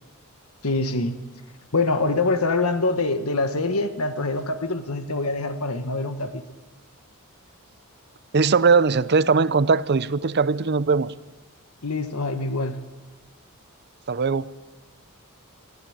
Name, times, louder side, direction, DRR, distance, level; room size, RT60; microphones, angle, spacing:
voice 1, 0.6-1.1 1.7-6.4 11.8-12.8, left 3 dB, 75° left, 9 dB, 1.5 m, -24 dB
voice 2, 8.3-11.1 14.1-14.5, right 4 dB, 50° right, 17 dB, 0.6 m, -20 dB
23.0 x 15.0 x 8.8 m, 1.2 s
head